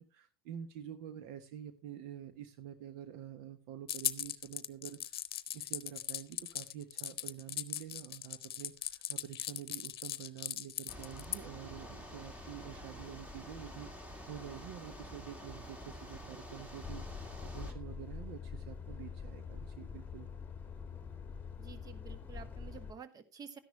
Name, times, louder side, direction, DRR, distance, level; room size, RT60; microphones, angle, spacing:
voice 1, 0.0-5.2 5.5-13.9 14.2-20.3, right 10 dB, 60° right, 10 dB, 1.3 m, -48 dB
sound 1, 3.9-11.4, left 11 dB, 80° left, 0.8 m, -38 dB
sound 2, 10.9-17.7, left 1 dB, 10° right, 2.6 m, -48 dB
Truck, 16.8-22.9, left 6 dB, 15° left, 1.9 m, -45 dB
voice 2, 21.6-23.6, right 6 dB, 30° right, 11 dB, 1.6 m, -50 dB
13.0 x 10.5 x 3.2 m, 0.27 s
hypercardioid pair, 85°, 13 cm